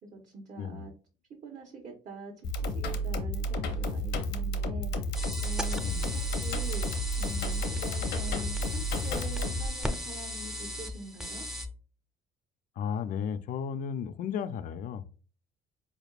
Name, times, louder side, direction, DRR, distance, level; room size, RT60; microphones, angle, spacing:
voice 1, 0.0-0.9 1.4-2.3 2.6-4.9 5.4-5.8 6.2-6.9 7.2-11.5, right 1 dB, 45° right, 1.0 m, -44 dB
voice 2, 0.6-0.9 5.8-6.2 12.8-15.1, left 7 dB, 55° left, 0.4 m, -34 dB
sound 1, 2.4-9.7, equal, 85° left, 0.8 m, -31 dB
sound 2, 5.1-11.7, left 1 dB, ahead, 0.5 m, -37 dB
4.4 x 3.4 x 2.4 m
cardioid pair, 110°, 17 cm